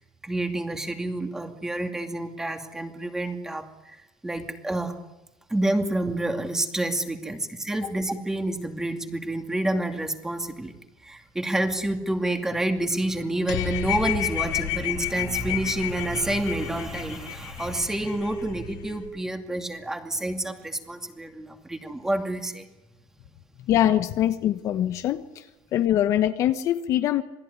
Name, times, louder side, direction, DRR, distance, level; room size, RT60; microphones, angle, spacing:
voice 1, 0.2-4.0 4.2-4.9 5.5-10.7 11.0-22.7, right 1 dB, 5° right, 5 dB, 2.5 m, -28 dB
sound 1, 13.5-19.1, left 12 dB, 90° left, 5.4 m, -31 dB
voice 2, 23.7-25.4 25.7-27.2, left 11 dB, 45° left, 9 dB, 1.2 m, -23 dB
27.5 x 20.0 x 9.8 m, 1.0 s
cardioid pair, 165°, 7 cm